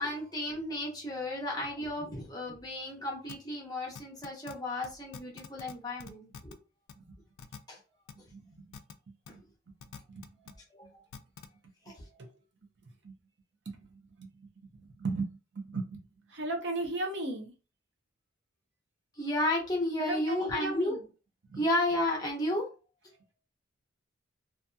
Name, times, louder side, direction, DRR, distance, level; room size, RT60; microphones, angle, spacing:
voice 1, 0.0-6.6 7.7-7.8 9.3-9.4 10.5-10.9 11.9-12.3 19.2-21.0 21.6-22.7, left 1 dB, 20° left, 0.8 m, -33 dB
sound 1, 3.3-3.4 4.0-4.5 4.8-4.9 5.1-5.7 6.0-6.5 6.9-7.0 7.4-7.6 8.1-8.2 8.7-8.9 9.3-9.4 9.8-10.5 11.1-11.5, left 6 dB, 85° left, 0.4 m, -45 dB
voice 2, 8.3-8.6 9.3-9.4 10.1-10.2 12.2-12.3 13.0-13.2 13.7-14.3 14.7-16.0 16.3-17.5 20.0-21.0 21.5-21.6, right 2 dB, 60° right, 0.6 m, -36 dB
2.7 x 2.4 x 2.3 m
head